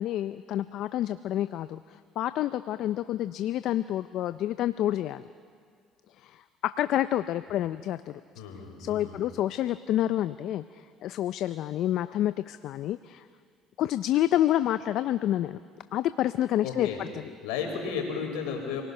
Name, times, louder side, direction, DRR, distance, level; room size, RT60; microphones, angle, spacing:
voice 1, 0.0-5.2 6.2-8.2 8.8-13.2 13.8-15.6 15.9-17.1, left 12 dB, 65° left, 13 dB, 0.5 m, -28 dB
voice 2, 8.3-9.2 16.6-17.0 17.4-18.8, left 6 dB, 85° left, 2 dB, 4.4 m, -33 dB
27.0 x 18.5 x 5.5 m, 2.1 s
supercardioid pair, 80°, 0 cm